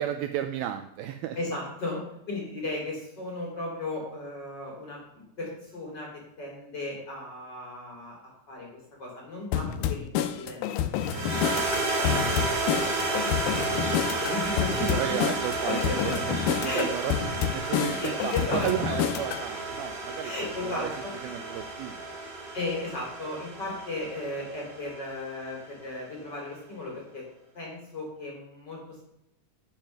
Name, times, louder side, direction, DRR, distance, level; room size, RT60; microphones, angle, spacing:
voice 1, 0.0-1.4 14.8-20.3 20.6-20.9 21.2-22.0, right 11 dB, 85° right, 8 dB, 2.2 m, -33 dB
voice 2, 1.4-8.2 8.5-11.4 11.9-13.9 14.2-15.0 15.6-16.3 16.6-16.9 18.0-18.7 20.2-21.1 22.5-27.3 27.5-29.1, left 2 dB, 25° left, -2 dB, 3.7 m, -36 dB
sound 1, 9.5-19.5, left 10 dB, 80° left, 2.3 m, -29 dB
sound 2, 11.0-25.4, right 2 dB, 60° right, 5.6 m, -32 dB
10.5 x 7.4 x 5.9 m, 0.82 s
omnidirectional pair, 4.9 m